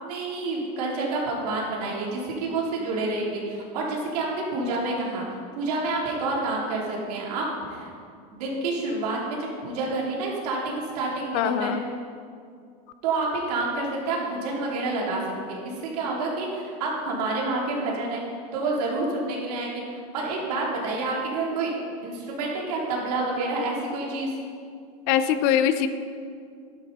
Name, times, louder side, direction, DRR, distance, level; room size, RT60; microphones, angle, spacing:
voice 1, 0.0-5.2 5.5-7.9 8.3-11.7 13.0-18.2 18.5-21.7 22.0-24.3, right 3 dB, 80° right, -3 dB, 3.5 m, -28 dB
voice 2, 11.3-11.8 25.1-25.9, left 9 dB, 40° left, 11 dB, 0.5 m, -22 dB
12.5 x 11.5 x 4.2 m, 2.3 s
supercardioid pair, 180°, 20 cm